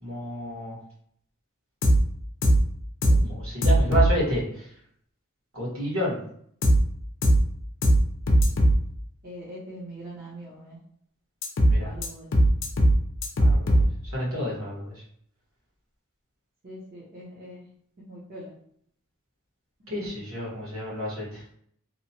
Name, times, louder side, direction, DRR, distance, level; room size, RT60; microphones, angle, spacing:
voice 1, 0.0-0.7 3.1-4.4 5.5-6.1 11.7-11.9 13.4-13.8 14.1-14.9 19.9-21.2, equal, 75° right, -5 dB, 1.4 m, -29 dB
sound 1, 1.8-2.0 2.4-2.6 3.0-3.2 3.6-4.1 6.6-6.8 7.2-7.4 7.8-8.0 8.3-8.7 11.4-11.7 12.0-12.1 12.3-12.9 13.2-13.8, right 1 dB, 65° left, 0.5 m, -18 dB
voice 2, 9.2-10.8 11.7-12.3 16.6-17.6 18.1-18.5 19.8-19.9, right 1 dB, 45° right, -7 dB, 0.7 m, -42 dB
2.9 x 2.1 x 2.7 m, 0.66 s
head